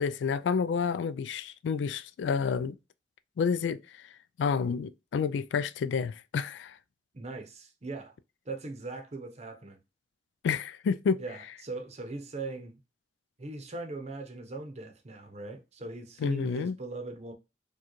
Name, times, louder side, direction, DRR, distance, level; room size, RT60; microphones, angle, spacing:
voice 1, 0.0-2.8 3.4-3.8 4.4-6.8 10.4-11.2 16.2-16.8, left 6 dB, 85° left, 0.3 m, -29 dB
voice 2, 7.1-8.1 8.4-9.8 11.2-12.8 13.4-17.3, right 3 dB, 40° right, 0.7 m, -40 dB
4.6 x 2.3 x 3.0 m
head